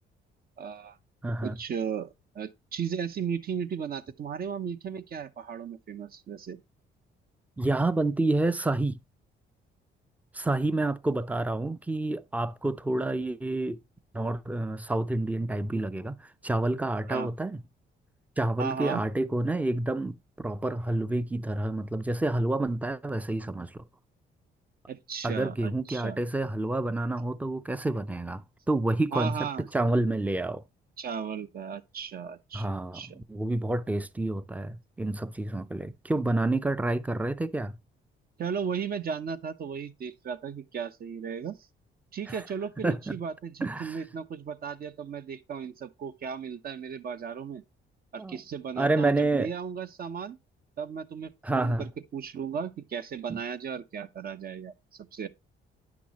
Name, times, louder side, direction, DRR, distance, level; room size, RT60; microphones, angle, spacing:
voice 1, 0.6-1.0 1.4-6.6 17.1-17.3 18.6-19.0 24.9-26.2 29.1-29.7 31.0-33.2 38.4-41.6 42.1-47.6 48.1-50.4 50.8-55.3, right 7 dB, 50° right, 0.8 m, -35 dB
voice 2, 1.2-1.6 7.6-9.0 10.3-13.8 14.1-17.6 18.4-23.8 25.2-30.6 32.5-37.7 42.3-42.4 42.8-43.2 43.6-44.0 48.2-48.4 48.8-49.5 51.4-51.9 53.3-53.4, right 2 dB, 5° right, 0.5 m, -29 dB
9.6 x 6.0 x 2.9 m
cardioid pair, 90°, 20 cm